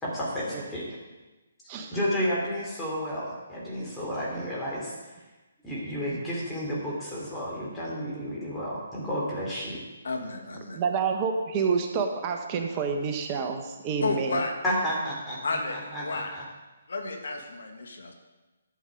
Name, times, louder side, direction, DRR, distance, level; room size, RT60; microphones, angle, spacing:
voice 1, 0.0-1.0 1.9-5.0 5.6-9.8 14.6-16.4, equal, 10° left, -7 dB, 3.6 m, -31 dB
voice 2, 10.0-10.8 14.0-14.5 15.4-16.3 16.9-18.1, left 3 dB, 70° left, 4 dB, 1.9 m, -32 dB
voice 3, 10.7-14.4, right 5 dB, 30° right, 4 dB, 1.1 m, -28 dB
12.0 x 7.3 x 5.1 m, 1.2 s
figure-of-eight pair, 140°, 0 cm